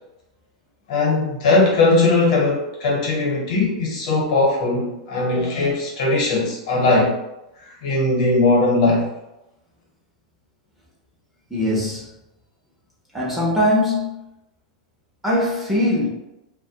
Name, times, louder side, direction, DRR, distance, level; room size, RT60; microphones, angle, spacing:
voice 1, 0.9-7.1 7.6-9.1, left 2 dB, 70° left, -2 dB, 0.9 m, -19 dB
voice 2, 11.5-12.1 13.1-14.2 15.2-16.1, left 1 dB, 5° right, -5 dB, 0.6 m, -21 dB
2.1 x 2.1 x 2.7 m, 0.91 s
hypercardioid pair, 120°, 4 cm